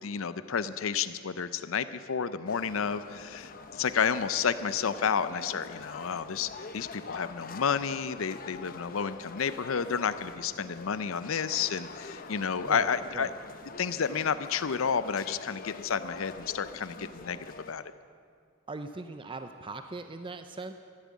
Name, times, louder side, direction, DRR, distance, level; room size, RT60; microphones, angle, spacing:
voice 1, 0.0-13.3 13.8-17.4 17.7-17.8, left 6 dB, 75° left, 13 dB, 0.6 m, -31 dB
sound 1, 2.5-17.7, left 4 dB, 45° left, 0.9 m, -45 dB
voice 2, 12.6-13.3 18.7-20.7, right 3 dB, 25° right, 8 dB, 0.5 m, -40 dB
14.0 x 10.0 x 8.5 m, 2.2 s
head